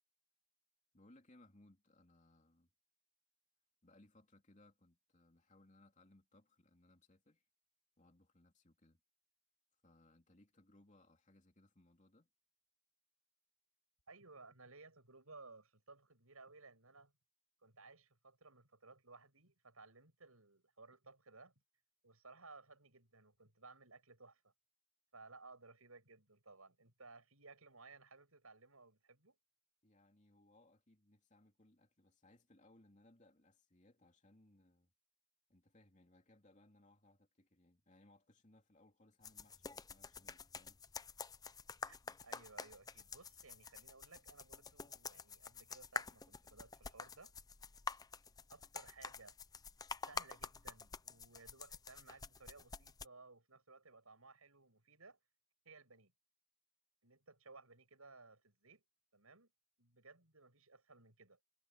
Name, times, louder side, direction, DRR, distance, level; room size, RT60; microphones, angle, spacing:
voice 1, 0.9-2.7 3.8-7.4 8.0-9.0 9.8-12.3 29.8-34.9 35.5-40.8, left 1 dB, 35° left, 2.9 m, -67 dB
voice 2, 14.1-17.1 17.6-21.5 22.0-24.5 25.1-29.4 41.8-47.3 48.5-49.3 50.0-55.2 55.6-56.1 57.0-58.8 59.1-59.5 59.8-61.4, right 3 dB, 80° right, 6.8 m, -60 dB
sound 1, 39.2-53.0, left 4 dB, 15° left, 0.5 m, -48 dB
head